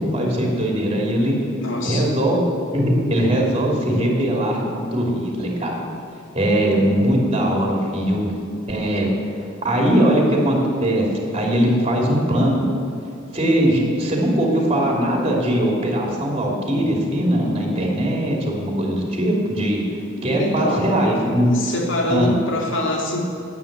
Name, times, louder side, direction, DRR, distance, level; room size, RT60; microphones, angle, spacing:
voice 1, 0.0-1.3 1.8-2.4 2.7-5.7 6.3-8.3 8.7-9.1 9.4-11.1 11.3-12.7 13.3-21.5 22.1-22.3, right 1 dB, 30° right, -1 dB, 2.7 m, -20 dB
voice 2, 1.6-2.1 20.2-20.9 21.5-23.2, left 1 dB, 65° left, 0 dB, 2.4 m, -24 dB
9.6 x 9.2 x 8.6 m, 2.6 s
head